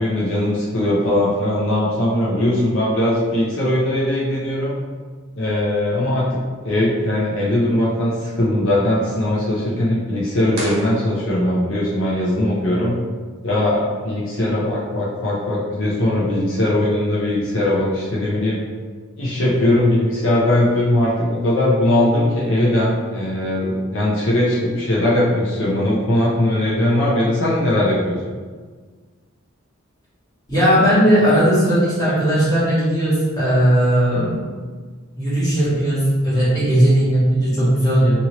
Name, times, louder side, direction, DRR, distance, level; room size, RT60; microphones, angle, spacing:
voice 1, 0.0-4.8 5.4-13.0 13.4-18.6 19.2-28.2, left 1 dB, 65° left, -6 dB, 0.6 m, -20 dB
sound 1, 10.5-11.7, equal, 65° right, 1.1 m, -32 dB
voice 2, 30.5-34.4 35.2-38.2, equal, 20° left, -11 dB, 1.3 m, -17 dB
2.9 x 2.6 x 2.8 m, 1.5 s
head